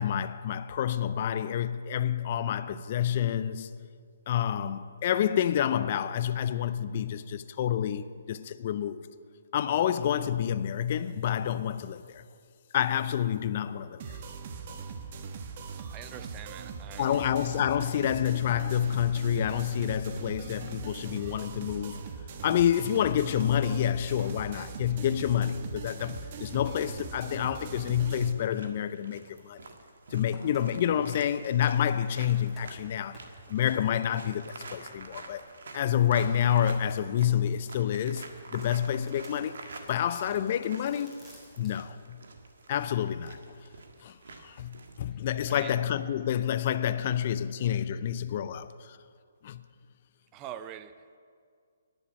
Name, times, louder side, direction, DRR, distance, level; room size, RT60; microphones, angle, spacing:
voice 1, 0.0-3.7 4.3-9.0 9.5-12.2 12.7-14.0 17.0-22.0 22.4-29.6 30.1-33.2 33.5-35.4 35.7-41.2 41.6-42.2 42.7-43.4 44.0-49.0 49.4-49.6, left 10 dB, 45° left, 0.6 m, -28 dB
sound 1, 14.0-28.3, right 5 dB, 45° right, 1.2 m, -41 dB
voice 2, 15.9-17.3 45.5-45.7 48.8-48.9 50.3-51.2, right 11 dB, 25° right, 0.5 m, -44 dB
sound 2, 28.3-45.0, right 3 dB, 70° right, 1.7 m, -48 dB
sound 3, 30.2-35.6 36.0-41.8, equal, 10° right, 4.0 m, -55 dB
11.0 x 10.0 x 8.8 m
hypercardioid pair, 140°, 0 cm